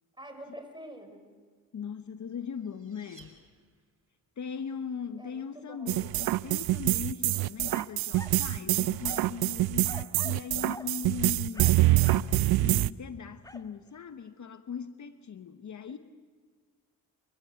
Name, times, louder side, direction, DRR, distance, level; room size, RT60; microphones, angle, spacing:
voice 1, 0.2-1.3 5.2-5.9 15.9-16.0, right 1 dB, 10° right, 6 dB, 5.8 m, -46 dB
voice 2, 1.7-3.4 4.4-11.8 12.6-16.0, left 6 dB, 45° left, 11 dB, 1.1 m, -39 dB
sound 1, 2.1-4.2, right 3 dB, 35° right, 4.5 m, -59 dB
sound 2, 5.9-12.9, right 16 dB, 70° right, 0.6 m, -25 dB
sound 3, 7.7-8.4 9.0-9.4 9.8-10.4 10.7-10.9 11.5-12.3 13.4-13.7, left 1 dB, 10° left, 1.5 m, -46 dB
29.5 x 15.5 x 8.3 m, 1.5 s
supercardioid pair, 50°, 39 cm